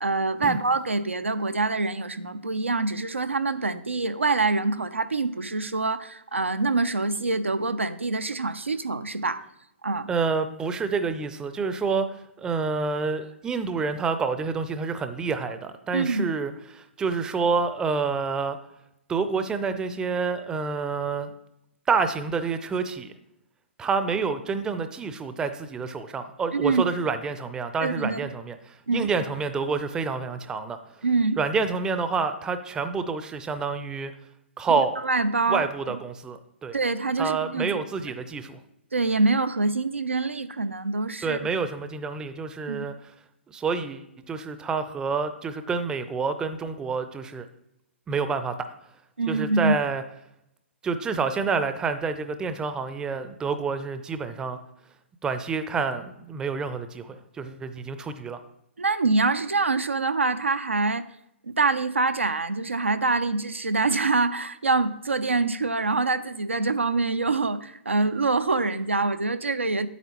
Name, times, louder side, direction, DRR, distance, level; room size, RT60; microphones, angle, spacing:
voice 1, 0.0-9.5 9.8-10.1 15.9-16.3 26.5-26.8 27.8-28.2 28.9-29.1 31.0-31.4 35.0-35.7 36.7-37.8 38.9-41.4 42.7-42.9 49.2-49.7 58.8-61.0 61.4-69.9, right 3 dB, 85° right, 11 dB, 0.5 m, -25 dB
voice 2, 10.1-18.6 19.1-21.3 21.9-23.1 23.8-30.8 31.4-34.1 34.6-35.0 35.5-36.7 37.2-38.6 41.2-42.9 43.5-47.5 48.1-48.7 49.3-50.0 50.8-54.6 55.2-58.4, right 5 dB, 10° right, 10 dB, 0.5 m, -28 dB
9.2 x 8.1 x 3.0 m, 0.80 s
figure-of-eight pair, 125°, 7 cm